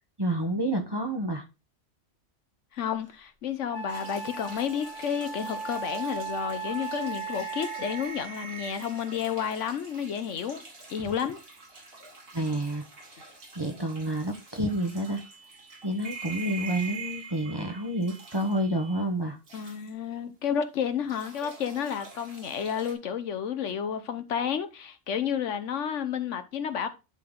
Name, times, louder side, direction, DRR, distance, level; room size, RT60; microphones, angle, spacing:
voice 1, 0.2-1.4 12.3-12.9 13.1-15.2 15.8-19.4, right 1 dB, 20° right, 0.9 m, -29 dB
voice 2, 2.7-10.6 10.9-11.4 19.5-26.9, left 8 dB, 75° left, 1.2 m, -31 dB
Wind instrument woodwind instrument, 3.1-3.2 3.7-8.4, right 5 dB, 25° left, 1.0 m, -37 dB
sound 1, 3.9-20.6 20.9-22.9, right 2 dB, 50° right, 1.9 m, -50 dB
sound 2, 5.3-11.5 11.8-12.3 13.4-13.5 14.0-14.1 15.0-19.0, right 5 dB, 80° right, 1.8 m, -44 dB
10.5 x 3.8 x 3.7 m
omnidirectional pair, 1.3 m